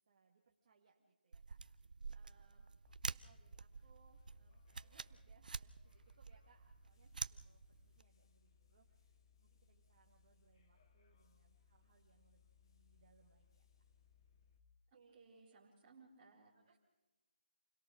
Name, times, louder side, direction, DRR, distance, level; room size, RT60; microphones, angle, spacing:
voice 1, 0.0-13.6 14.9-15.8 16.5-16.8, right 5 dB, 35° right, 1 dB, 1.6 m, -73 dB
sound 1, 1.3-8.0, right 4 dB, 55° right, 0.6 m, -49 dB
sound 2, 2.8-14.6, left 6 dB, 25° left, 1.3 m, -70 dB
voice 2, 15.1-16.5, right 4 dB, 15° right, -4 dB, 3.7 m, -63 dB
28.0 x 18.0 x 6.2 m, 1.2 s
figure-of-eight pair, 165°, 5 cm